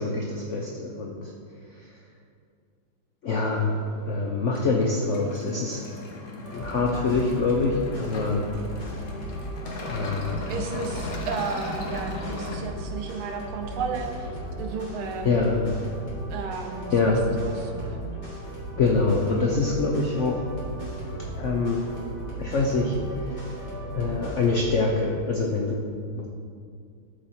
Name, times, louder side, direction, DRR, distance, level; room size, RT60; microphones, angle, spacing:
voice 1, 0.0-1.3 3.2-5.9 6.5-8.4 9.9-10.4 15.2-15.6 16.9-17.2 18.8-20.4 21.4-21.9 22.4-23.0 23.2-23.4 23.9-25.8 26.2-26.3, left 3 dB, 90° left, 0 dB, 0.6 m, -25 dB
sound 1, 3.4-12.6, left 2 dB, 55° left, 1.2 m, -38 dB
sound 2, 6.4-24.6, right 1 dB, 35° left, 2.3 m, -36 dB
voice 2, 10.5-15.3 16.3-17.1 17.4-18.1, right 4 dB, 85° right, 3 dB, 1.8 m, -33 dB
12.5 x 4.4 x 4.2 m, 2.3 s
omnidirectional pair, 2.2 m